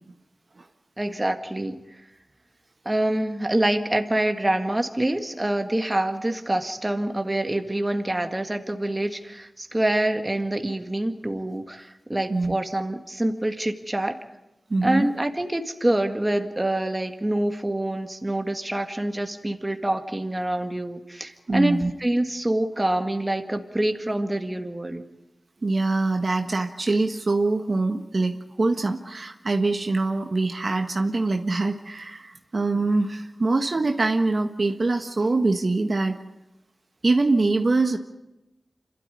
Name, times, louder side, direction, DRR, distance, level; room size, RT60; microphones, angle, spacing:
voice 1, 1.0-1.8 2.9-14.1 14.8-25.0, right 1 dB, 20° right, 6 dB, 1.9 m, -26 dB
voice 2, 14.7-15.1 21.5-21.9 25.6-36.2 37.0-38.0, right 3 dB, 55° right, 5 dB, 1.5 m, -24 dB
27.0 x 13.0 x 9.9 m, 0.97 s
wide cardioid pair, 55°, 0 cm